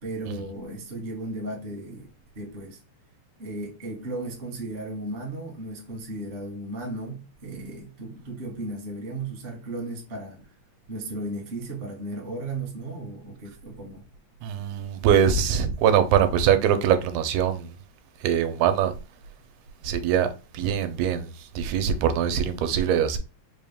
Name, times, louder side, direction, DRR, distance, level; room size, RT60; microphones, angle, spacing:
voice 1, 0.0-2.1 2.3-2.8 3.4-10.5 10.9-14.0, right 2 dB, 50° right, 0.7 m, -35 dB
voice 2, 14.4-17.7 18.2-18.9 19.8-20.3 20.5-21.3 21.6-23.2, right 8 dB, 90° right, 2.0 m, -22 dB
4.9 x 2.2 x 3.5 m
omnidirectional pair, 3.4 m